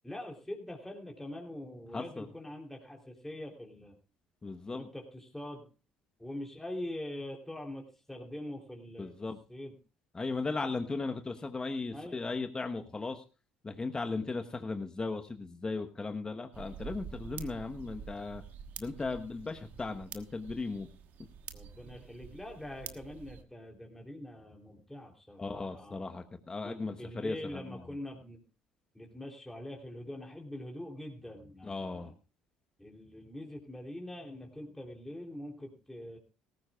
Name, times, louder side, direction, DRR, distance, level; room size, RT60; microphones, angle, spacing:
voice 1, 0.0-4.0 4.7-5.7 6.2-9.8 11.9-12.2 21.5-26.0 26.6-28.4 28.9-32.1 32.8-36.2, left 1 dB, 5° left, 0 dB, 3.3 m, -44 dB
voice 2, 1.9-2.3 4.4-4.9 9.0-9.4 10.1-13.2 13.6-18.4 18.8-20.9 25.4-27.8 31.6-32.1, left 3 dB, 25° left, 6 dB, 1.2 m, -37 dB
sound 1, 16.5-23.4, right 8 dB, 60° right, 1.3 m, -47 dB
18.0 x 15.0 x 2.4 m, 0.34 s
hypercardioid pair, 65°, 3 cm